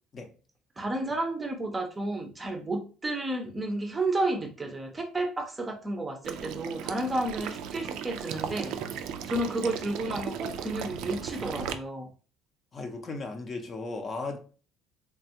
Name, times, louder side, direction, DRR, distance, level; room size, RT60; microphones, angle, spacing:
voice 1, 0.8-8.8 9.3-12.1, right 2 dB, 20° right, 0.5 m, -31 dB
Water / Liquid, 6.2-11.7, right 8 dB, 75° right, 0.3 m, -36 dB
voice 2, 12.7-14.4, left 3 dB, 35° left, 0.6 m, -36 dB
3.2 x 2.2 x 2.7 m
cardioid pair, 120°, 0 cm